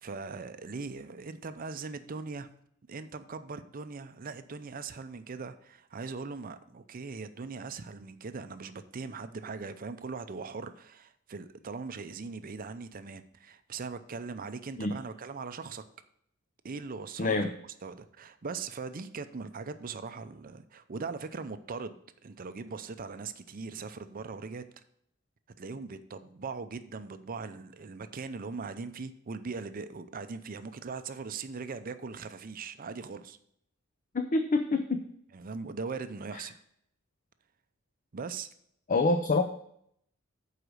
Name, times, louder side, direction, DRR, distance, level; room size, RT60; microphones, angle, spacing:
voice 1, 0.0-2.5 2.9-15.8 16.6-17.5 17.8-24.6 25.6-33.4 35.3-36.5 38.1-38.5, right 4 dB, 45° right, 11 dB, 0.5 m, -40 dB
voice 2, 17.2-17.5 34.1-35.0 38.9-39.5, left 3 dB, 40° left, 6 dB, 0.5 m, -26 dB
8.0 x 4.9 x 6.3 m, 0.71 s
head